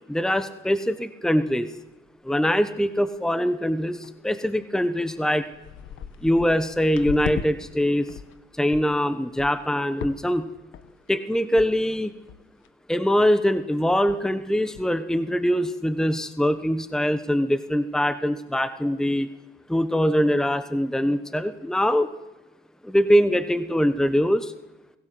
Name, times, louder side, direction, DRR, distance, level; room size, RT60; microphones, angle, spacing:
voice 1, 0.1-1.7 2.2-5.4 6.2-8.2 8.5-10.5 11.1-12.1 12.9-19.3 19.7-22.1 22.8-24.5, equal, 5° left, 12 dB, 1.2 m, -23 dB
Footsteps on Wood, 2.1-2.2 2.4-2.9 3.1-3.4 4.0-4.1 4.8-4.9 5.2-7.5 7.8-8.4 8.7-8.9 9.4-9.7 10.0-10.4 10.7-11.1 11.6-11.7 12.0-12.1 12.3-12.7 13.1-13.3 13.6-13.7 13.9-14.3 14.7-14.8, left 8 dB, 80° left, 1.4 m, -37 dB
25.0 x 16.5 x 7.8 m, 1.0 s
cardioid pair, 90°, 20 cm